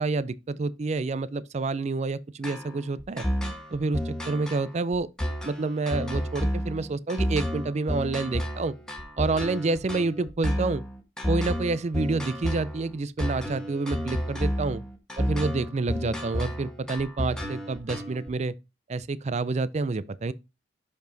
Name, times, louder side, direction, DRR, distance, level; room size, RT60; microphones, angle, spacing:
voice 1, 0.0-3.3 3.7-5.1 5.4-8.7 9.2-10.8 11.3-14.8 15.2-18.5 18.9-20.3, right 3 dB, 35° right, 0.4 m, -28 dB
sound 1, 2.4-18.3, equal, 5° left, 1.3 m, -31 dB
6.9 x 5.3 x 3.8 m
head